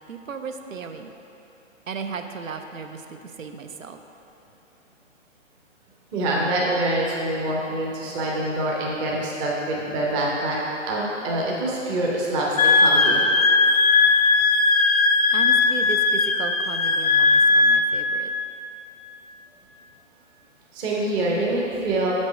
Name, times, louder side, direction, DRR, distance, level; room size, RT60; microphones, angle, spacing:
voice 1, 0.1-1.1 1.9-4.0 15.3-18.3, right 5 dB, 80° right, 6 dB, 0.6 m, -35 dB
voice 2, 6.1-10.6 10.9-13.2 20.7-22.1, right 1 dB, 10° right, -4 dB, 0.6 m, -25 dB
Wind instrument woodwind instrument, 12.6-17.9, left 3 dB, 90° left, 0.5 m, -18 dB
6.4 x 5.2 x 5.1 m, 3.0 s
figure-of-eight pair, 120°, 39 cm